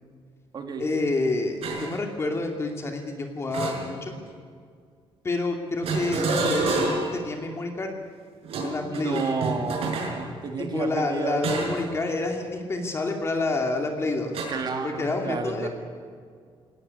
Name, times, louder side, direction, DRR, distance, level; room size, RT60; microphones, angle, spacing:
voice 1, 0.8-4.1 5.2-7.9 8.6-9.2 10.6-14.3 14.8-15.7, left 2 dB, 25° left, 3 dB, 2.6 m, -28 dB
sound 1, 1.6-2.0 3.5-4.3 5.8-7.2 8.4-10.2 11.4-11.9 12.3-12.5 14.3-14.4, right 3 dB, 75° right, 6.1 m, -28 dB
voice 2, 8.9-11.5 14.5-15.7, right 4 dB, 45° right, 4 dB, 3.2 m, -31 dB
21.5 x 18.0 x 9.9 m, 2.1 s
cardioid pair, 155°, 10 cm